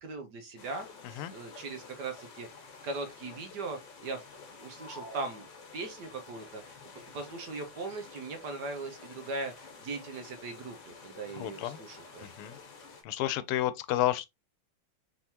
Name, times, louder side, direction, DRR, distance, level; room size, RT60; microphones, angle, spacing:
voice 1, 0.0-2.5 2.8-4.2 4.6-5.5 5.7-6.8 7.1-12.3, right 3 dB, 60° right, 1.3 m, -39 dB
sound 1, 0.6-13.0, left 4 dB, 55° left, 1.8 m, -51 dB
sound 2, 4.7-6.2, right 1 dB, 35° left, 1.5 m, -49 dB
voice 2, 11.4-11.8 12.2-12.6 13.0-14.3, left 14 dB, 90° left, 1.5 m, -31 dB
4.5 x 3.6 x 2.7 m
omnidirectional pair, 2.4 m